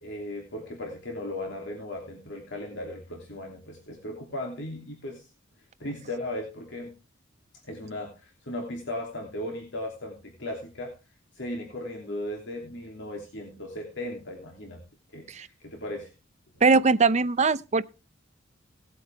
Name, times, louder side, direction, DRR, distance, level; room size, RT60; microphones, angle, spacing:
voice 1, 0.0-5.2 5.8-6.9 7.7-10.9 11.4-14.8 15.1-16.1, left 1 dB, 65° left, 3.0 m, -37 dB
voice 2, 16.6-17.8, right 4 dB, 35° right, 0.6 m, -21 dB
18.5 x 8.5 x 3.5 m
head